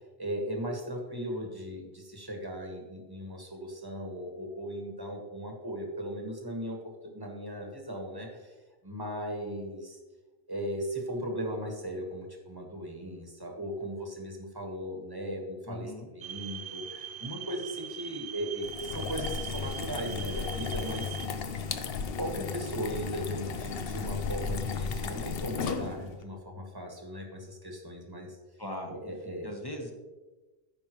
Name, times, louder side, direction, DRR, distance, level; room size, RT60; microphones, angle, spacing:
voice 1, 0.2-8.5 8.8-10.0 10.5-21.6 22.2-28.4 28.9-29.5, equal, 20° right, 1 dB, 1.4 m, -37 dB
voice 2, 15.7-16.1 28.6-28.9 29.4-29.9, left 1 dB, 25° left, 1 dB, 1.2 m, -39 dB
sound 1, 16.2-21.3, right 8 dB, 65° right, 0.8 m, -41 dB
sound 2, 18.6-26.2, left 5 dB, 70° left, 0.9 m, -35 dB
14.5 x 5.3 x 3.1 m, 1.2 s
omnidirectional pair, 1.1 m